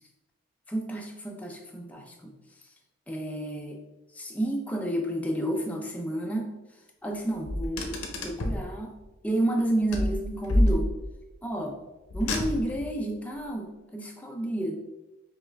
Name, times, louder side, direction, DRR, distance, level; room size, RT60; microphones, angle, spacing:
voice 1, 0.7-2.3 3.1-3.8 4.1-6.5 7.0-8.9 9.2-10.9 11.4-11.8 12.1-14.8, right 1 dB, 5° left, 1 dB, 0.4 m, -31 dB
Car, 7.5-8.7 9.9-11.2 12.1-12.9, left 1 dB, 80° left, 0.7 m, -27 dB
5.3 x 2.4 x 3.3 m, 1.0 s
head